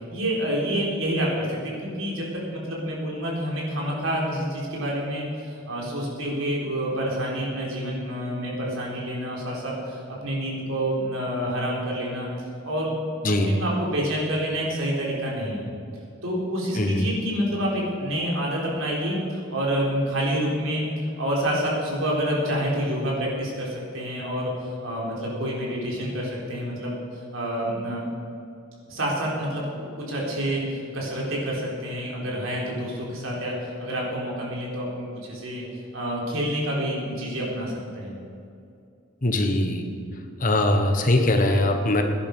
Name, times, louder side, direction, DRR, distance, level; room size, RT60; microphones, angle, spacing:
voice 1, 0.1-2.3 2.5-12.3 12.6-12.9 13.2-15.7 16.2-20.9 21.2-28.0 28.9-35.7 35.9-38.2, equal, 80° right, -3 dB, 3.9 m, -28 dB
voice 2, 13.2-13.6 16.8-17.1 39.2-39.8 40.4-42.0, left 1 dB, 40° left, 5 dB, 1.3 m, -21 dB
17.5 x 10.0 x 5.4 m, 2.5 s
head